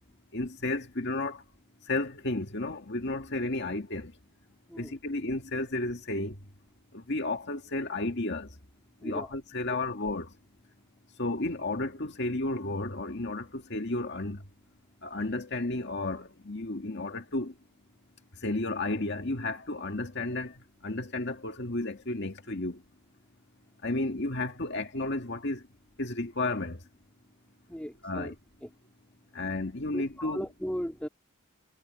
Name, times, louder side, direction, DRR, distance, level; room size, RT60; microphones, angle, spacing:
voice 1, 0.3-1.4 1.9-4.1 4.8-6.4 6.9-8.5 9.0-10.3 11.2-14.4 15.0-17.5 18.4-20.5 20.8-22.8 23.8-25.6 26.0-26.8 28.0-28.3 29.3-30.4, left 2 dB, 55° left, 2.0 m, -32 dB
voice 2, 9.0-9.3 9.7-9.8 27.7-28.3 28.6-28.7 29.9-31.1, equal, 5° left, 3.5 m, -37 dB
head